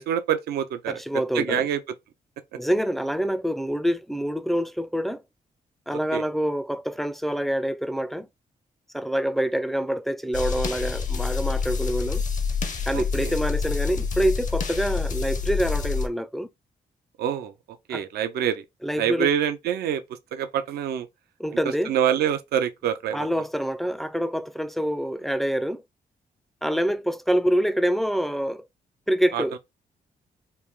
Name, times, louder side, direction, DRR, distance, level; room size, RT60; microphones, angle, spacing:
voice 1, 0.0-1.0 1.3-1.8 5.9-6.2 12.9-13.3 17.2-17.5 17.9-18.6 19.0-20.0 20.3-21.1 21.9-23.3 29.3-29.4, right 9 dB, 85° right, 0.4 m, -26 dB
voice 2, 0.9-1.7 2.6-5.2 5.9-8.3 8.9-12.2 12.9-16.5 17.9-18.0 18.8-19.3 21.4-21.9 23.1-25.8 26.6-28.7 29.1-29.6, equal, ahead, 0.4 m, -26 dB
sound 1, 10.3-16.1, left 5 dB, 55° left, 0.7 m, -27 dB
3.2 x 2.4 x 3.5 m
cardioid pair, 65°, 16 cm